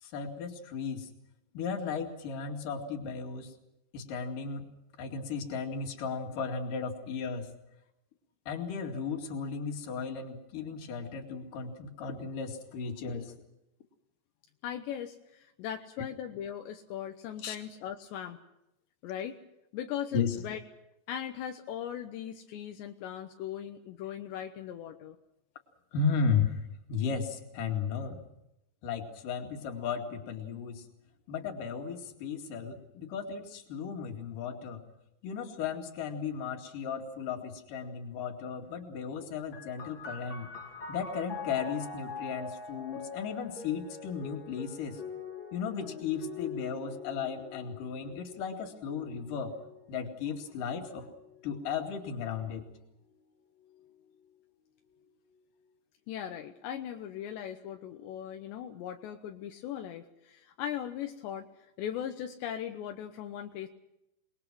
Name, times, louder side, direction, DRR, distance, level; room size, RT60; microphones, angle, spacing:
voice 1, 0.0-1.1 1.5-3.5 3.9-4.7 5.0-7.5 8.5-13.3 17.4-17.6 20.1-20.4 25.9-26.6 26.9-28.2 28.8-30.9 31.3-34.8 35.2-40.5 40.9-45.0 45.5-49.5 49.9-51.1 51.4-52.7, left 6 dB, 55° left, 4 dB, 3.6 m, -35 dB
voice 2, 14.6-18.4 19.0-19.4 19.7-20.6 21.1-25.2 56.1-61.5 61.8-63.7, left 10 dB, 80° left, 5 dB, 3.2 m, -39 dB
sound 1, 39.5-52.8 53.6-54.4, left 5 dB, 35° left, 2.5 m, -45 dB
28.5 x 21.0 x 6.1 m, 0.87 s
omnidirectional pair, 5.2 m